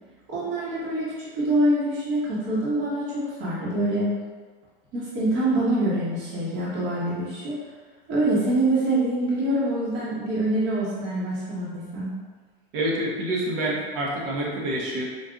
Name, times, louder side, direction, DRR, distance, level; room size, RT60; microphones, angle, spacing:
voice 1, 0.3-4.1 4.9-7.6 8.1-12.1, right 1 dB, 50° right, -8 dB, 1.3 m, -25 dB
voice 2, 12.7-15.0, right 1 dB, 65° right, -3 dB, 1.1 m, -27 dB
3.9 x 2.6 x 2.4 m, 1.5 s
hypercardioid pair, 105°, 29 cm